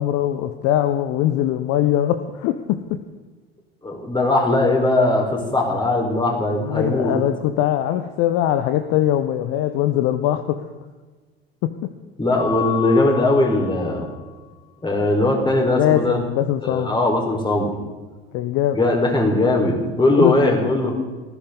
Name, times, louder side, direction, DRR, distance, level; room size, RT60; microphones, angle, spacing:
voice 1, 0.0-3.0 6.6-10.6 11.6-11.9 15.0-15.2 15.8-16.9 18.3-18.8 20.1-20.4, left 12 dB, 45° left, 10 dB, 1.0 m, -21 dB
voice 2, 3.8-7.2 12.2-14.1 14.8-16.2 16.6-17.7 18.7-20.9, left 2 dB, 15° left, 1 dB, 4.7 m, -19 dB
Mallet percussion, 12.4-14.2, left 12 dB, 80° left, 4.0 m, -30 dB
19.5 x 15.5 x 4.0 m, 1.3 s
figure-of-eight pair, 70°, 31 cm